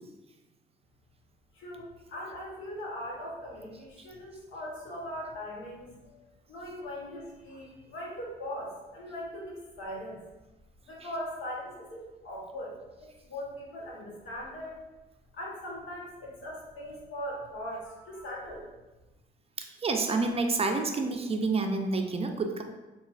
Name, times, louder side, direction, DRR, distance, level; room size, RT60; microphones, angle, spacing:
voice 1, 1.5-6.2 6.5-10.2 10.9-14.9 15.3-18.7, equal, 80° left, -3 dB, 1.0 m, -40 dB
voice 2, 19.8-22.6, right 3 dB, 30° right, 4 dB, 0.4 m, -28 dB
5.0 x 2.3 x 2.4 m, 1.1 s
cardioid pair, 90°, 20 cm